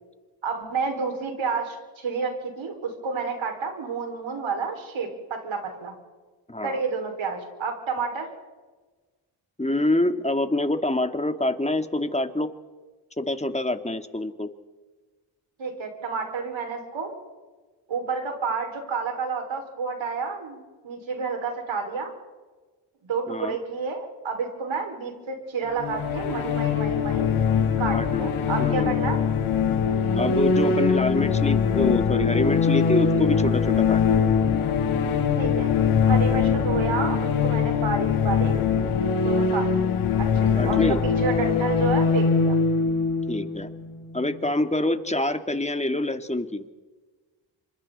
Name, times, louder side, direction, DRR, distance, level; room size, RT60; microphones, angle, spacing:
voice 1, 0.4-6.0 6.6-8.3 15.6-17.1 17.9-22.1 23.0-27.3 27.8-29.2 35.4-35.7 36.0-38.6 39.2-42.5, right 5 dB, 70° right, 3 dB, 5.9 m, -30 dB
voice 2, 6.5-6.8 9.6-12.5 13.2-14.5 23.3-23.6 27.9-28.3 28.6-29.0 30.1-34.2 40.5-41.0 43.3-43.7 44.1-46.6, left 1 dB, 15° left, 8 dB, 2.3 m, -26 dB
sound 1, 25.8-44.4, left 6 dB, 90° left, 2.6 m, -22 dB
28.5 x 26.0 x 4.3 m, 1.3 s
supercardioid pair, 45°, 48 cm